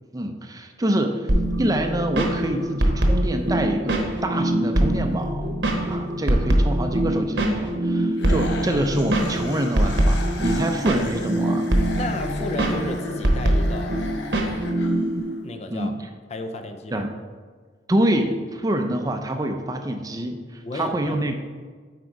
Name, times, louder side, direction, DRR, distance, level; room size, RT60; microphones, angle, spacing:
voice 1, 0.1-1.3 1.6-5.5 5.9-11.7 15.7-16.0 16.9-17.1 17.9-21.3, right 1 dB, 20° right, 5 dB, 0.5 m, -26 dB
sound 1, 1.3-15.2, right 1 dB, 70° right, 1.0 m, -23 dB
sound 2, 8.2-15.4, left 3 dB, 65° left, 0.8 m, -37 dB
voice 2, 12.0-14.0 15.4-15.9 16.3-17.1 20.6-21.3, left 1 dB, 35° left, 7 dB, 0.5 m, -32 dB
8.0 x 4.8 x 4.7 m, 1.5 s
head